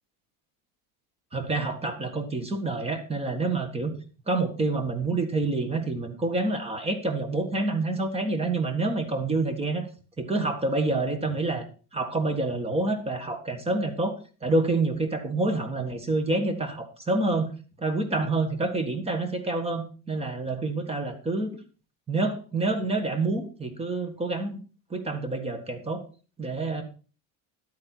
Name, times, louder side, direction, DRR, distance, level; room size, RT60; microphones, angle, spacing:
voice 1, 1.3-4.0 4.3-9.9 10.2-11.7 11.9-14.1 14.4-17.5 17.8-21.6 22.1-24.6 24.9-26.0 26.4-26.8, right 2 dB, 15° right, 8 dB, 1.7 m, -27 dB
12.0 x 8.9 x 4.6 m, 0.36 s
cardioid pair, 160°, 44 cm